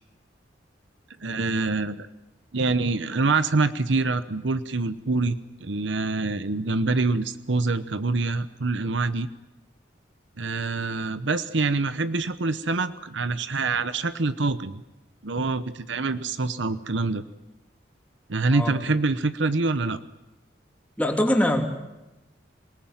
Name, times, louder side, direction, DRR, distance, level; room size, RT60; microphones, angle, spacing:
voice 1, 1.2-2.1 2.5-9.3 10.4-14.8 15.2-17.2 18.3-20.0, right 3 dB, 85° right, 12 dB, 1.0 m, -25 dB
voice 2, 21.0-21.6, left 1 dB, 10° left, 2 dB, 3.1 m, -22 dB
27.0 x 19.0 x 9.0 m, 1.0 s
head